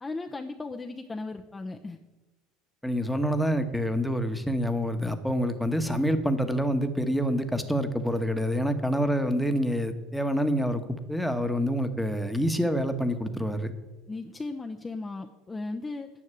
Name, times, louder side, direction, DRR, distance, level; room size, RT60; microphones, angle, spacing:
voice 1, 0.0-2.0 14.1-16.1, left 3 dB, 15° left, 4 dB, 0.7 m, -36 dB
voice 2, 2.8-10.8 11.1-13.7, equal, ahead, 8 dB, 1.2 m, -27 dB
9.9 x 6.4 x 8.9 m, 1.2 s
supercardioid pair, 105°, 0 cm